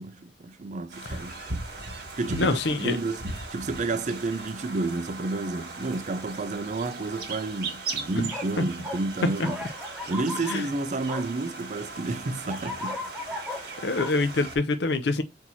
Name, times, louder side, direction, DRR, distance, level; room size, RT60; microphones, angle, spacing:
voice 1, 0.0-1.4 2.2-3.2 3.5-9.7 10.1-13.1, right 3 dB, 40° right, 0.5 m, -31 dB
sound 1, 0.9-14.6, right 3 dB, 60° right, 1.7 m, -38 dB
voice 2, 2.4-3.0 8.6-8.7 10.5-10.7 13.8-15.2, left 3 dB, 65° left, 0.6 m, -25 dB
sound 2, 8.3-8.5 8.8-9.0 9.4-10.6 11.1-11.3 12.5-14.1, left 2 dB, 5° right, 0.8 m, -36 dB
4.4 x 2.8 x 4.1 m
head